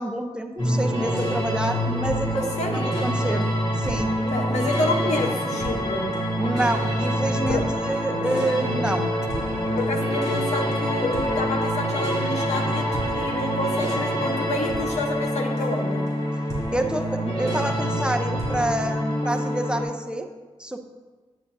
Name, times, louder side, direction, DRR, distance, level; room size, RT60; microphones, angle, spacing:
voice 1, 0.0-3.5 3.8-4.1 6.4-9.0 16.7-20.3 20.6-20.8, right 1 dB, 10° right, 5 dB, 0.7 m, -27 dB
sound 1, 0.6-19.8, equal, 65° left, 2.6 m, -26 dB
voice 2, 2.3-3.0 4.2-6.1 7.5-7.7 8.1-8.2 9.8-16.1, left 2 dB, 85° left, 4 dB, 0.9 m, -29 dB
9.0 x 8.7 x 2.7 m, 1.3 s
cardioid pair, 65°, 11 cm